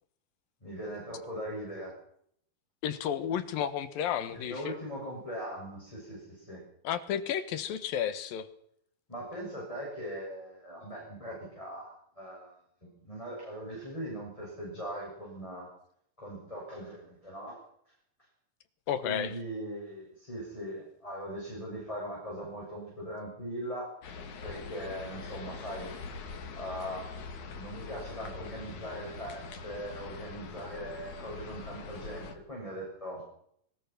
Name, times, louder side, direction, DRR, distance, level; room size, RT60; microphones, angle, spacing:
voice 1, 0.6-1.9 4.3-6.6 9.1-12.5 12.8-15.7 16.2-17.6 19.0-23.9 24.4-25.9 26.5-33.2, equal, 10° left, -5 dB, 7.5 m, -40 dB
voice 2, 2.8-4.8 6.8-8.5 18.9-19.3, left 9 dB, 70° left, 13 dB, 3.0 m, -32 dB
sound 1, 24.0-32.4, left 4 dB, 55° left, 3.4 m, -43 dB
22.5 x 20.0 x 6.0 m, 0.68 s
omnidirectional pair, 4.3 m